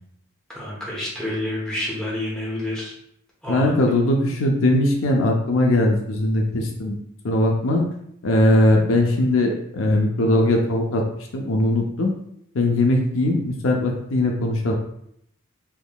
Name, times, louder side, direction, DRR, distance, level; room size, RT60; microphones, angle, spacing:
voice 1, 0.5-2.9 3.4-3.8, left 1 dB, 5° left, -6 dB, 0.9 m, -28 dB
voice 2, 3.5-7.0 7.2-7.9 8.2-11.0 11.3-12.1 12.5-14.7, left 1 dB, 65° left, 1 dB, 0.5 m, -20 dB
3.5 x 3.1 x 2.3 m, 0.73 s
head